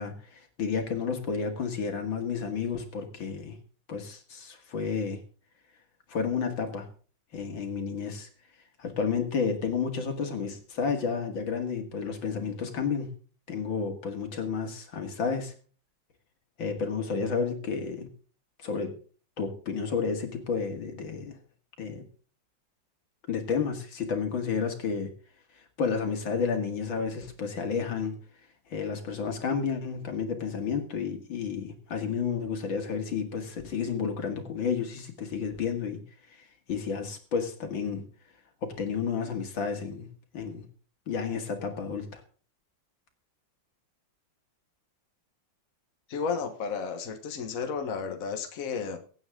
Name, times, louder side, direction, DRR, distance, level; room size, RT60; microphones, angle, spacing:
voice 1, 0.0-3.6 3.9-5.2 6.1-6.9 7.3-8.3 8.8-13.1 13.5-15.5 16.6-18.1 18.6-18.9 19.4-21.4 21.8-22.0 23.3-25.1 25.8-28.1 28.7-36.0 36.4-38.0 38.6-40.1 40.3-40.6 41.1-42.2, left 5 dB, 80° left, 5 dB, 2.9 m, -31 dB
voice 2, 46.1-49.0, left 5 dB, 50° left, 7 dB, 1.6 m, -32 dB
23.5 x 8.8 x 3.7 m, 0.40 s
omnidirectional pair, 2.1 m